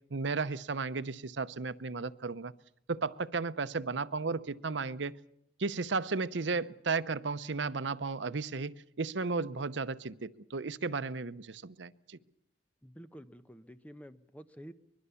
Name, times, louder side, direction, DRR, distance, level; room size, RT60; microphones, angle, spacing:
voice 1, 0.1-2.5 2.9-5.1 5.6-12.2, right 4 dB, 75° right, 14 dB, 0.8 m, -34 dB
voice 2, 12.8-14.7, equal, 10° left, 11 dB, 0.9 m, -50 dB
24.5 x 21.5 x 7.0 m, 0.75 s
head